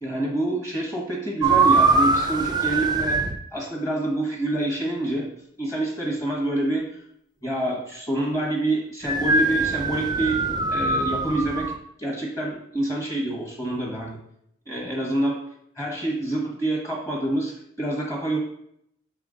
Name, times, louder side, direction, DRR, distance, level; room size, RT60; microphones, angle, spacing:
voice 1, 0.0-3.2 3.5-5.3 5.6-6.8 7.4-10.4 10.7-11.7 12.0-14.2 14.7-15.4 15.8-18.4, right 1 dB, 15° left, -2 dB, 1.1 m, -27 dB
sound 1, 1.4-3.4 9.0-11.8, right 3 dB, 20° right, 0.4 m, -22 dB
6.8 x 3.9 x 3.8 m, 0.73 s
head